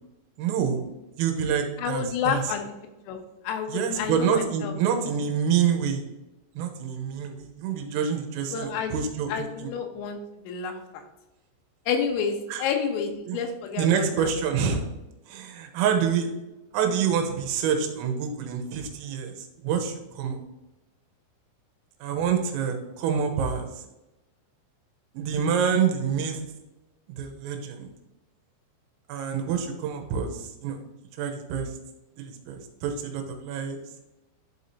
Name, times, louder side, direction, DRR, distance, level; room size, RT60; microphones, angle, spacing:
voice 1, 0.4-0.8 1.2-2.5 3.7-6.0 6.6-9.7 12.5-12.7 13.3-13.4 13.8-14.9 15.3-16.3 16.7-20.4 22.0-23.8 25.2-26.4 27.1-27.9 29.1-30.8 31.2-31.7 32.2-33.8, right 7 dB, 85° right, 4 dB, 3.5 m, -27 dB
voice 2, 1.8-2.6 3.1-3.2 3.4-4.7 8.5-10.2 10.4-11.0 11.9-14.3, left 6 dB, 80° left, 4 dB, 3.2 m, -29 dB
11.5 x 4.8 x 2.7 m, 1.0 s
omnidirectional pair, 5.9 m